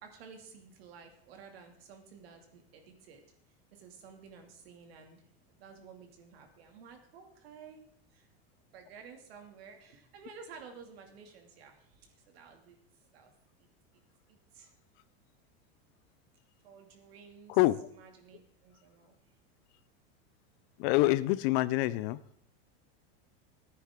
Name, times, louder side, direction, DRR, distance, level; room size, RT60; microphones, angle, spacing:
voice 1, 0.0-3.2 3.7-5.2 5.5-7.8 8.1-8.3 8.7-12.8 13.1-13.3 13.9-14.0 14.3-14.7 16.6-17.6 17.9-19.2, right 6 dB, 80° right, 4 dB, 2.3 m, -53 dB
voice 2, 17.5-17.9 20.8-22.2, left 18 dB, 55° left, 17 dB, 0.6 m, -26 dB
15.0 x 9.3 x 3.7 m, 0.70 s
supercardioid pair, 125°, 30 cm